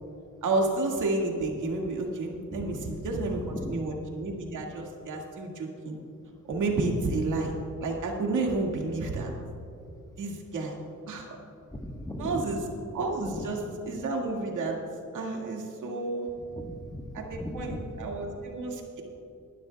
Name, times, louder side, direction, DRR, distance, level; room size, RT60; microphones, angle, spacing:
voice 1, 0.4-6.0 6.5-7.5 7.8-9.3 10.2-10.8 11.1-11.3 12.2-12.6 12.9-13.6 13.9-14.8 15.1-16.3 17.1-19.0, right 2 dB, 80° right, 0 dB, 2.1 m, -30 dB
voice 2, 2.5-2.9 3.4-3.8 11.7-12.6 13.2-13.5 16.5-18.1, left 1 dB, 10° left, 3 dB, 1.3 m, -38 dB
24.0 x 11.5 x 2.3 m, 2.7 s
cardioid pair, 95°, 31 cm